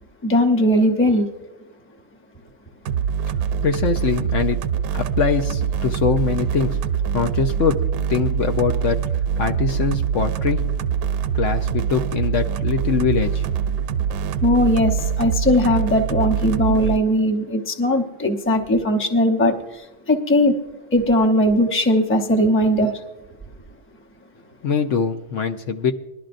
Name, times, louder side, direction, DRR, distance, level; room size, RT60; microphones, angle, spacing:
voice 1, 0.2-1.3 14.4-20.6 20.9-23.0, left 1 dB, 10° left, 4 dB, 0.7 m, -19 dB
sound 1, 2.9-17.0, right 8 dB, 85° right, 1.0 m, -24 dB
voice 2, 3.6-4.6 4.9-6.8 7.1-9.0 9.4-10.7 11.3-13.4 24.6-25.9, left 6 dB, 65° left, 6 dB, 0.9 m, -23 dB
20.5 x 12.0 x 2.6 m, 1.0 s
omnidirectional pair, 1.5 m